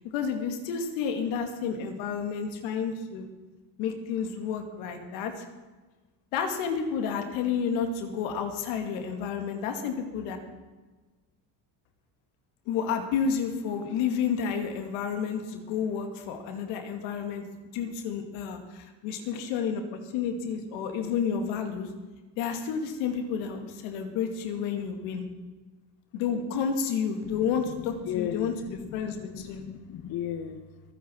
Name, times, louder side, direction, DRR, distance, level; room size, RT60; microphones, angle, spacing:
voice 1, 0.1-3.3 3.8-5.4 6.3-10.4 12.7-17.4 17.7-21.9 22.4-25.2 26.1-28.5 28.9-29.6, left 6 dB, 90° left, 5 dB, 2.5 m, -30 dB
voice 2, 27.2-30.8, left 9 dB, 50° left, 9 dB, 1.1 m, -36 dB
22.5 x 9.7 x 4.7 m, 1.3 s
cardioid pair, 110°, 45 cm